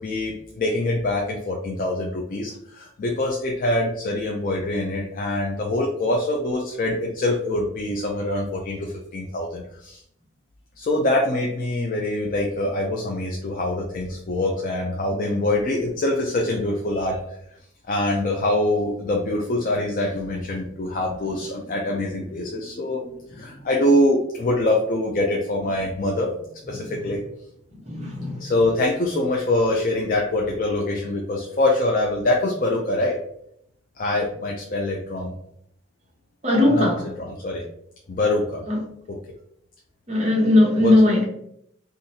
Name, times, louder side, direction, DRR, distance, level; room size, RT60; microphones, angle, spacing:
voice 1, 0.0-10.0 10.8-17.2 17.9-26.3 26.7-27.2 28.4-33.2 34.0-35.3 36.7-37.6 38.1-38.6 39.1-39.2 40.8-41.0, left 1 dB, 40° left, 0.4 m, -24 dB
voice 2, 27.9-28.4 36.4-37.0 38.7-38.8 40.1-41.2, left 2 dB, 35° right, 0.9 m, -18 dB
3.8 x 2.5 x 2.7 m
head